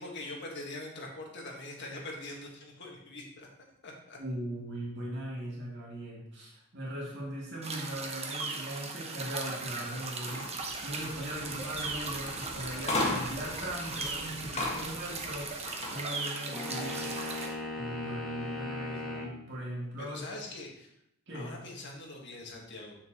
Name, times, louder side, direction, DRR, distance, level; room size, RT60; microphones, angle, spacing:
voice 1, 0.0-4.2 16.8-17.1 20.0-20.9 21.3-23.0, left 2 dB, 55° left, -1 dB, 1.6 m, -43 dB
voice 2, 4.2-15.6 15.9-17.0 17.8-20.3 21.3-21.5, right 1 dB, 60° right, -5 dB, 2.3 m, -39 dB
sound 1, 7.6-17.5, right 3 dB, 30° right, 0.9 m, -38 dB
sound 2, 10.2-16.0, left 2 dB, 30° left, 1.7 m, -37 dB
sound 3, 16.5-19.4, left 2 dB, ahead, 1.3 m, -38 dB
7.6 x 6.9 x 3.0 m, 0.76 s
head